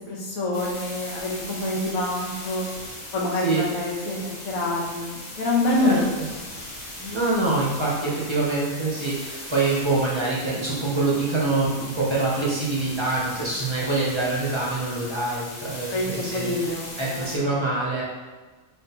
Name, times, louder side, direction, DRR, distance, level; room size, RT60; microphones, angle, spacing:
voice 1, 0.1-2.7 3.1-4.2 4.4-6.1 13.4-13.5 15.9-17.5, left 2 dB, 75° left, -3 dB, 1.3 m, -26 dB
sound 1, 0.5-17.4, left 1 dB, 40° left, 0.7 m, -38 dB
voice 2, 5.8-6.2 7.0-18.0, right 2 dB, 30° right, -6 dB, 0.6 m, -25 dB
3.7 x 3.5 x 2.9 m, 1.3 s
omnidirectional pair, 1.5 m